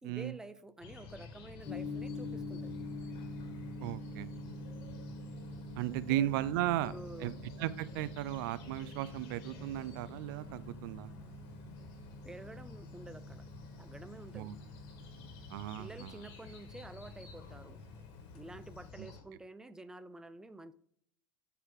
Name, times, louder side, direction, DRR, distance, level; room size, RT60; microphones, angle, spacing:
voice 1, 0.0-2.8 5.9-6.3 6.8-7.3 12.2-13.5 13.8-14.5 15.7-17.8 18.3-20.7, right 2 dB, 5° right, 13 dB, 0.5 m, -49 dB
sound 1, 0.8-19.2, left 5 dB, 60° left, 1.9 m, -51 dB
Gong, 1.6-18.9, left 1 dB, 20° left, 3.5 m, -47 dB
voice 2, 3.8-4.3 5.8-6.9 7.2-7.3 7.6-11.1 14.3-14.5 15.5-16.1, right 14 dB, 65° right, 16 dB, 0.5 m, -35 dB
9.9 x 4.7 x 3.7 m, 0.65 s
hypercardioid pair, 95°, 12 cm